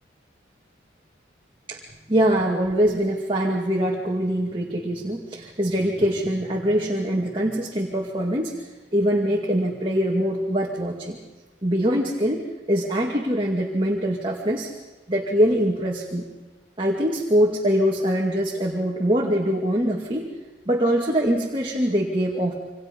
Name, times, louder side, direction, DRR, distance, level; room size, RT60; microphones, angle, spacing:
voice 1, 2.1-8.6 8.9-11.2 11.6-12.4 12.7-14.7 15.1-16.3 16.8-20.3 20.7-22.5, equal, 25° right, -2 dB, 2.4 m, -23 dB
27.5 x 26.0 x 5.4 m, 1.2 s
head